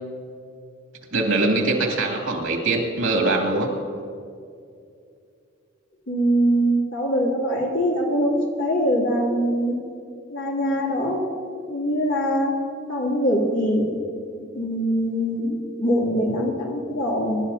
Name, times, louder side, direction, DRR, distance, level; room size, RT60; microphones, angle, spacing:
voice 1, 1.1-3.7, right 2 dB, 85° right, 0 dB, 2.6 m, -22 dB
voice 2, 6.1-9.8 10.3-11.3 11.7-12.6 12.9-13.8 14.4-17.4, equal, 80° left, -3 dB, 2.8 m, -23 dB
24.5 x 12.0 x 2.8 m, 2.4 s
head